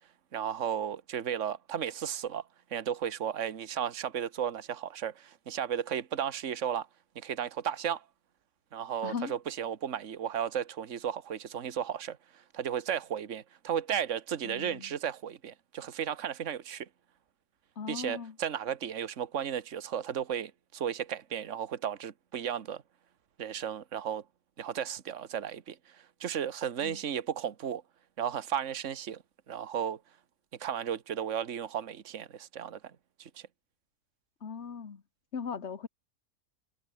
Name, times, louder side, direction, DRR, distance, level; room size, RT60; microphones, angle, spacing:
voice 1, 0.3-2.4 2.7-6.9 7.1-8.0 8.7-16.9 17.9-22.8 23.4-24.2 24.6-27.8 28.2-29.2 29.5-30.0 30.6-32.9 33.2-33.3, right 9 dB, 50° right, 1.6 m, -34 dB
voice 2, 9.0-9.3 14.4-14.9 17.8-18.3 26.8-27.0 34.4-35.0 35.3-35.9, left 6 dB, 45° left, 1.7 m, -38 dB
omnidirectional pair, 1.7 m